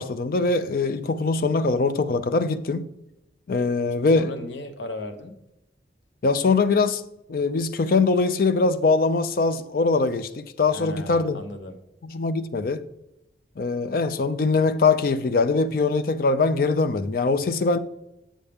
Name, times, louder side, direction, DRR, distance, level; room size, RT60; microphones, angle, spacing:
voice 1, 0.0-2.9 3.5-4.3 6.2-7.0 7.3-11.4 12.0-12.8 13.6-17.8, left 3 dB, 50° left, 0.4 m, -22 dB
voice 2, 4.1-5.3 10.7-11.8, left 2 dB, 75° left, 0.9 m, -36 dB
7.3 x 7.0 x 3.5 m
head